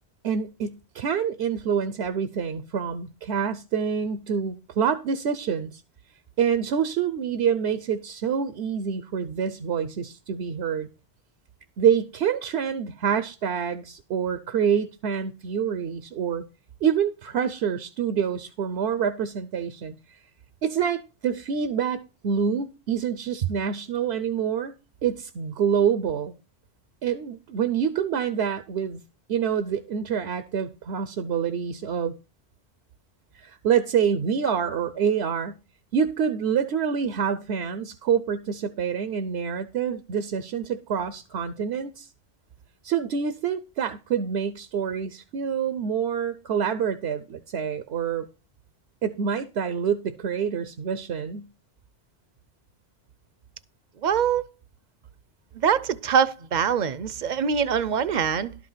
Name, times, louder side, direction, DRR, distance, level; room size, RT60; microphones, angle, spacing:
voice 1, 0.2-5.8 6.4-10.9 11.8-16.4 16.8-19.9 20.6-24.7 25.0-26.3 27.0-29.0 29.3-32.1 33.3-35.6 35.9-42.1 42.8-48.2 49.0-51.5, right 7 dB, 80° right, 1.0 m, -26 dB
voice 2, 54.0-54.4 55.5-58.5, right 7 dB, 50° right, 0.6 m, -23 dB
12.0 x 5.0 x 5.6 m
omnidirectional pair, 1.1 m